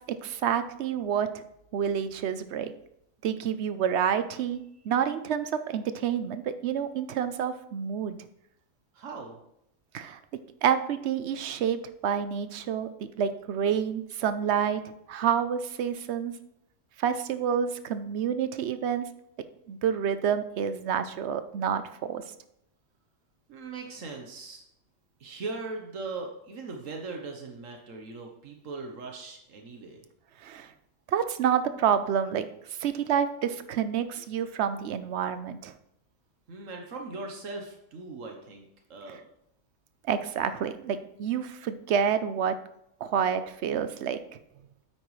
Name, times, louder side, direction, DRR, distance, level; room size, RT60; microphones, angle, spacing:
voice 1, 0.2-1.4 1.7-2.7 3.2-8.2 9.9-10.2 10.6-14.8 15.1-16.3 17.0-19.0 19.7-22.2 30.4-30.7 31.1-32.5 32.8-35.7 40.1-42.6 43.0-44.2, right 8 dB, 65° right, 11 dB, 0.9 m, -28 dB
voice 2, 8.9-9.4 23.5-24.6 25.2-30.1 36.5-39.2, right 3 dB, 85° right, 2 dB, 1.4 m, -39 dB
8.9 x 8.8 x 3.2 m, 0.77 s
omnidirectional pair, 1.3 m